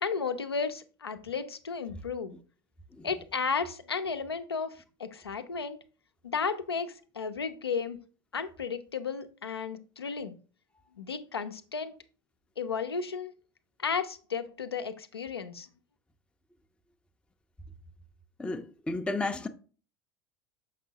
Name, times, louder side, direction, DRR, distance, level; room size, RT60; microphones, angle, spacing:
voice 1, 0.0-2.4 3.0-5.8 6.2-8.0 8.3-10.4 11.0-11.9 12.6-13.3 13.8-15.7, left 5 dB, 85° left, 0.5 m, -33 dB
voice 2, 18.4-19.5, left 2 dB, 10° left, 0.5 m, -32 dB
6.6 x 5.2 x 2.7 m
figure-of-eight pair, 75°, 13 cm